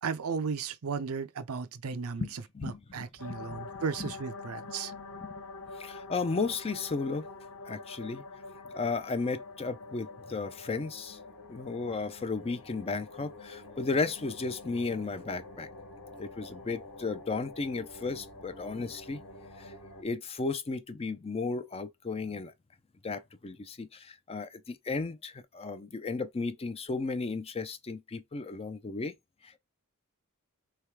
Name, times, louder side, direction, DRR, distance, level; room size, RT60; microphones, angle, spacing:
voice 1, 0.0-2.3 2.6-4.9, right 5 dB, 70° right, 0.5 m, -35 dB
voice 2, 2.2-3.6 4.0-4.1 5.1-5.4 5.8-7.3 7.7-8.2 8.7-11.2 11.5-15.7 16.2-19.2 19.6-19.7 20.0-22.5 23.0-29.1 29.4-29.5, left 4 dB, 25° left, 0.5 m, -34 dB
sound 1, 3.2-20.0, left 3 dB, 75° left, 1.3 m, -46 dB
3.5 x 3.0 x 4.6 m
head